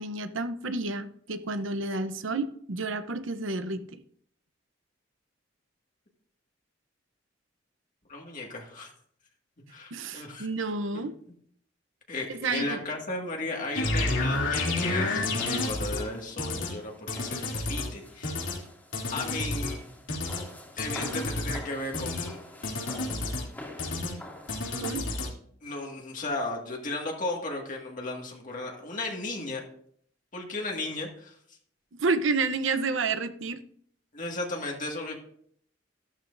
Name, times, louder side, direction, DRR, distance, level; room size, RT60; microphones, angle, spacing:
voice 1, 0.0-4.0 9.9-11.1 12.3-12.8 24.8-25.0 32.0-33.6, right 3 dB, 90° right, 9 dB, 0.8 m, -30 dB
voice 2, 8.1-8.9 9.7-10.5 10.9-11.0 12.1-18.5 19.1-19.8 20.8-22.4 25.6-29.6 30.3-31.4 34.1-35.2, left 2 dB, 45° left, 0 dB, 2.0 m, -35 dB
sound 1, 13.7-16.0 16.4-16.7 17.1-17.9 18.2-18.6 18.9-19.7 20.1-20.4 20.8-21.6 21.9-22.3 22.6-23.4 23.8-24.1 24.5-25.3, left 2 dB, 90° left, 2.8 m, -30 dB
sound 2, 14.2-24.9, left 1 dB, 10° left, 2.5 m, -48 dB
13.5 x 12.5 x 2.6 m, 0.63 s
head